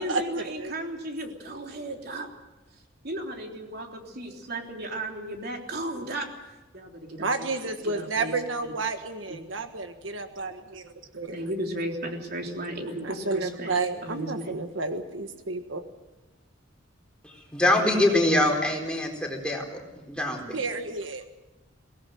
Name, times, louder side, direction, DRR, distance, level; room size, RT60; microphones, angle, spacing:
voice 1, 0.0-2.3 3.0-6.3 6.7-7.5 7.8-8.3 9.3-9.4 11.3-13.7 14.0-14.5, right 1 dB, 55° right, 2 dB, 3.5 m, -34 dB
voice 2, 7.2-10.8 11.1-11.4 13.0-15.8 20.5-21.3, right 3 dB, 75° right, 7 dB, 1.5 m, -31 dB
voice 3, 17.5-19.8 20.1-20.6, left 1 dB, 5° left, 1 dB, 4.2 m, -24 dB
23.0 x 18.0 x 7.8 m, 1.1 s
head